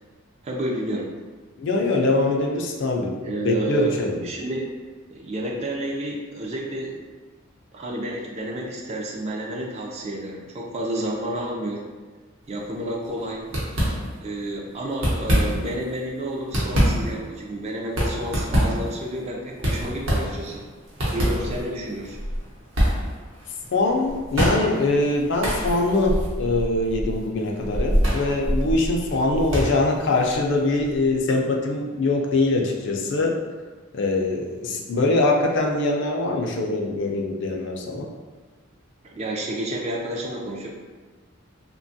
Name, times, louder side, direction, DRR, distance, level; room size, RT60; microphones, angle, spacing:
voice 1, 0.4-1.1 3.2-4.7 5.1-7.0 7.7-11.8 12.5-13.4 14.2-20.6 21.1-22.2 39.0-40.7, right 1 dB, 30° right, -1 dB, 0.3 m, -30 dB
voice 2, 1.6-4.3 23.7-33.3 33.9-38.1, left 2 dB, 55° left, 0 dB, 0.4 m, -23 dB
sound 1, 12.5-12.8 13.1-13.2 13.5-14.4 14.9-15.8 16.3-31.2, equal, 65° right, 0.8 m, -26 dB
2.8 x 2.2 x 2.6 m, 1.4 s
head